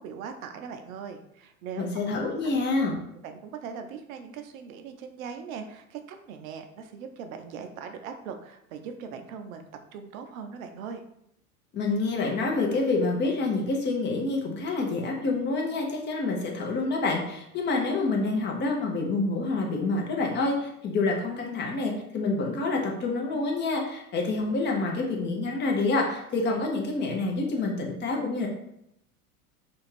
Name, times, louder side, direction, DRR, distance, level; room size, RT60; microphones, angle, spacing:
voice 1, 0.0-1.9 2.2-2.4 3.2-11.0, right 6 dB, 65° right, 6 dB, 0.5 m, -40 dB
voice 2, 1.8-3.0 11.7-28.5, left 3 dB, 25° left, 0 dB, 0.6 m, -27 dB
2.5 x 2.4 x 3.2 m, 0.78 s
figure-of-eight pair, 80°, 44 cm